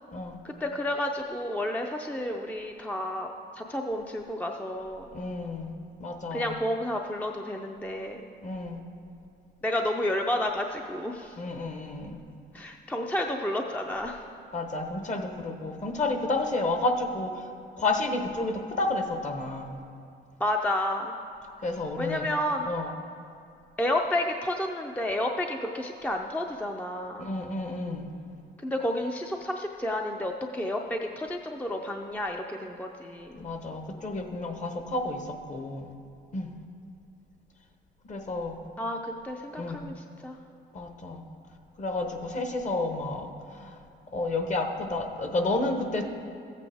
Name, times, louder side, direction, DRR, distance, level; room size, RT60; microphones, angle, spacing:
voice 1, 0.4-5.1 6.3-8.3 9.6-11.4 12.5-14.2 20.4-21.1 22.0-22.7 23.8-27.3 28.6-33.4 38.8-40.4, left 1 dB, 5° left, 2 dB, 0.5 m, -31 dB
voice 2, 5.1-5.7 6.0-6.5 8.4-8.8 11.4-12.2 14.5-17.4 17.8-19.8 21.6-22.3 22.6-22.9 27.2-28.1 33.3-35.9 36.3-36.5 38.1-38.6 39.6-39.9 40.7-41.2 41.8-43.8 44.1-46.1, left 2 dB, 35° left, 4 dB, 1.0 m, -31 dB
13.5 x 8.2 x 3.5 m, 2.4 s
cardioid pair, 90°, 20 cm